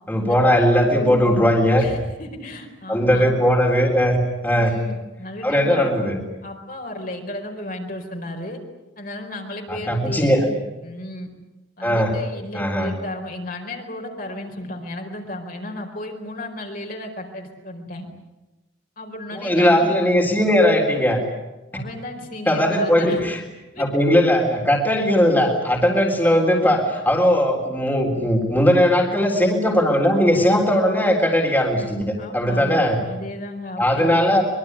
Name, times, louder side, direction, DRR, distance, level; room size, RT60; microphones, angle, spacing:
voice 1, 0.1-1.8 2.9-4.7 5.4-6.2 9.7-10.4 11.8-12.1 12.5-12.9 19.3-21.2 22.5-23.4 23.8-33.0 33.8-34.4, equal, 10° left, 1 dB, 3.7 m, -18 dB
voice 2, 1.8-3.3 4.5-5.9 6.4-8.6 9.0-11.3 11.8-18.1 19.0-19.9 21.7-23.2 23.7-24.0 32.2-34.3, left 1 dB, 50° left, 2 dB, 4.6 m, -34 dB
24.0 x 23.0 x 9.8 m, 1.0 s
head